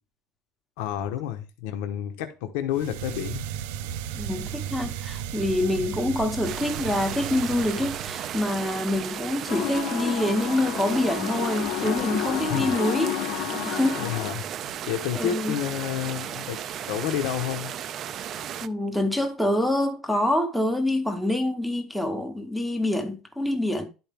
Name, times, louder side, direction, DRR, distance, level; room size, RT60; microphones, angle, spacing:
voice 1, 0.8-3.4 12.5-12.7 13.9-14.4 14.9-16.6 16.9-17.7, left 10 dB, 75° left, 1.0 m, -30 dB
sound 1, 2.7-8.6, right 10 dB, 85° right, 0.5 m, -35 dB
voice 2, 4.1-14.0 15.1-15.5 18.6-23.9, left 1 dB, ahead, 0.9 m, -26 dB
sound 2, 6.4-18.7, right 10 dB, 35° right, 0.4 m, -35 dB
sound 3, 9.5-14.3, left 16 dB, 55° left, 0.4 m, -30 dB
11.0 x 4.5 x 3.5 m
cardioid pair, 175°, 0 cm